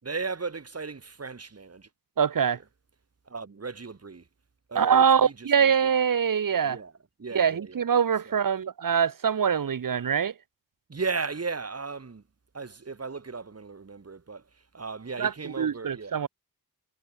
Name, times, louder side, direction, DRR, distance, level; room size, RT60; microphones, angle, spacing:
voice 1, 0.0-1.9 3.3-4.2 4.7-5.5 5.8-5.9 6.6-6.9 7.2-7.9 8.3-8.4 10.9-12.2 12.5-14.4 14.7-16.2, right 4 dB, 40° right, 6.3 m, -36 dB
voice 2, 2.2-2.6 4.7-6.8 7.3-10.3 15.2-16.3, right 7 dB, 60° right, 1.2 m, -24 dB
wide cardioid pair, 160°, 37 cm